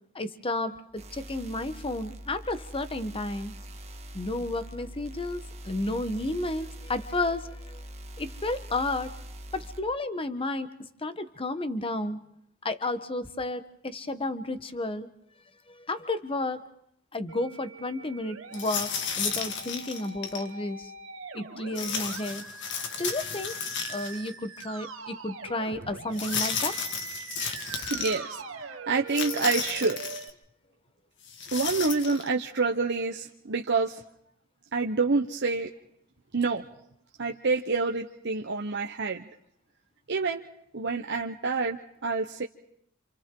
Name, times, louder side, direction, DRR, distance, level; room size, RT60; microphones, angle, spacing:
voice 1, 0.1-3.6 4.1-7.8 8.2-9.1 9.5-12.2 12.6-15.1 15.7-16.7 17.1-20.9 21.3-22.4 23.0-23.6 23.9-26.7, left 2 dB, 25° left, 10 dB, 1.1 m, -32 dB
sound 1, 1.0-9.8, equal, 35° right, 1.5 m, -43 dB
Musical instrument, 17.3-30.3, right 4 dB, 75° right, 2.0 m, -42 dB
sound 2, 18.5-20.5 21.8-24.3 24.6-24.7 26.1-28.2 29.1-30.3 31.3-32.3, left 6 dB, 60° left, 1.9 m, -33 dB
voice 2, 27.8-30.0 31.5-34.0 34.7-35.7 36.3-36.6 37.2-39.2 40.1-40.4 40.7-42.4, right 4 dB, 60° right, 2 dB, 1.0 m, -28 dB
28.0 x 28.0 x 3.8 m, 0.74 s
head